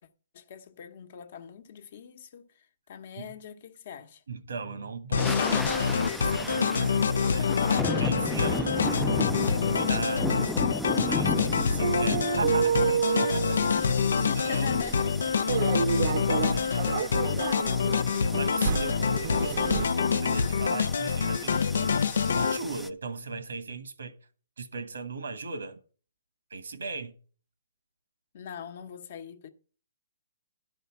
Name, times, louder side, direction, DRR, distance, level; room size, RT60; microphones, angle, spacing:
voice 1, 0.3-4.2 7.1-7.9 14.5-15.1 15.6-16.8 17.1-17.4 28.3-29.5, left 8 dB, 50° left, 0.9 m, -42 dB
voice 2, 4.3-10.5 10.9-13.5 14.1-14.7 16.0-17.2 18.4-21.9 22.3-24.1 24.6-25.8 26.5-27.1, right 4 dB, 85° right, 1.4 m, -37 dB
sound 1, 5.1-22.6, left 6 dB, 75° left, 0.4 m, -26 dB
sound 2, 5.2-22.9, left 2 dB, 5° left, 0.3 m, -36 dB
sound 3, 5.7-19.9, right 7 dB, 50° right, 0.6 m, -31 dB
11.5 x 5.2 x 5.6 m
hypercardioid pair, 160°, 0 cm